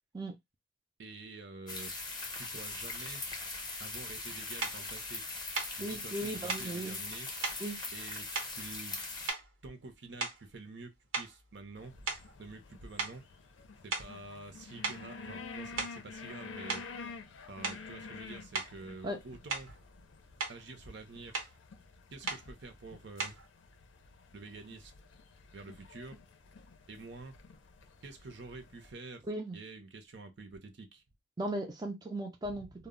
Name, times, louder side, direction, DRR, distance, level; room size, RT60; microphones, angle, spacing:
voice 1, 1.0-1.9 2.4-3.2 3.8-5.2 5.8-7.3 7.9-8.3 8.5-9.0 9.6-12.0 12.4-13.2 13.8-16.8 17.5-19.8 20.5-21.4 22.1-23.4 24.3-24.9 25.5-26.2 26.9-27.4 28.0-29.3 29.5-31.0 32.4-32.6, right 3 dB, 60° right, 0.6 m, -48 dB
sound 1, 1.7-9.3, left 3 dB, 20° left, 0.7 m, -41 dB
sound 2, 4.6-4.8 5.5-5.8 6.5-6.7 7.4-7.6 8.3-9.0 9.3-9.7 10.2-10.5 11.1-12.7 13.0-13.2 13.9-14.2 14.8-15.1 15.6-16.1 16.7-16.9 17.6-17.9 18.5-18.8 19.5-19.8 20.2-20.6 21.3-21.6 22.3-22.5 23.2-23.5, right 4 dB, 85° right, 0.9 m, -37 dB
voice 2, 5.8-7.0 7.6-7.8 19.0-19.2 29.3-29.6 31.4-32.9, right 1 dB, 20° right, 0.4 m, -37 dB
sound 3, 11.8-28.9, left 4 dB, 75° left, 0.5 m, -50 dB
2.1 x 2.0 x 3.6 m
head